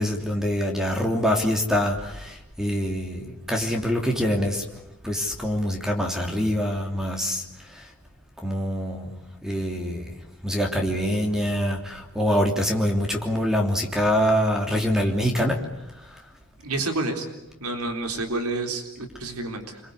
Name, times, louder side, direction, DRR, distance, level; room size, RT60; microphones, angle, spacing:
voice 1, 0.0-4.6 5.0-7.4 7.8-7.9 8.4-9.1 9.4-10.2 10.4-15.6, equal, ahead, 2 dB, 3.2 m, -25 dB
voice 2, 16.6-17.3 17.6-19.8, right 2 dB, 90° right, 5 dB, 4.0 m, -29 dB
27.0 x 23.0 x 8.3 m, 0.91 s
head